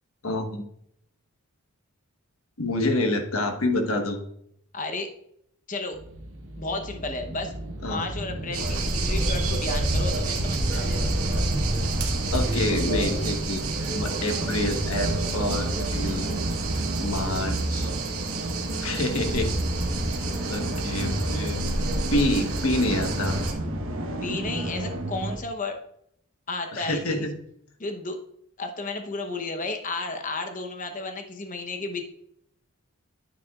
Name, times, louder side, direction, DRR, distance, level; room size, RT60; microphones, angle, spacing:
voice 1, 0.2-0.6 2.6-4.2 7.8-8.1 12.3-13.6 13.9-16.3 17.0-17.9 18.8-19.5 20.4-21.6 22.1-23.4 26.7-27.4, left 1 dB, 70° left, 4 dB, 1.3 m, -27 dB
voice 2, 4.7-5.1 5.7-6.0 6.6-7.5 7.8-11.1 24.2-25.8 26.5-27.3 27.8-28.2 28.6-32.0, left 3 dB, 35° left, 5 dB, 0.9 m, -33 dB
sound 1, 5.9-25.4, right 1 dB, 60° right, 1.2 m, -31 dB
sound 2, 8.5-23.5, right 2 dB, 80° right, 1.8 m, -29 dB
9.9 x 9.3 x 2.4 m, 0.72 s
head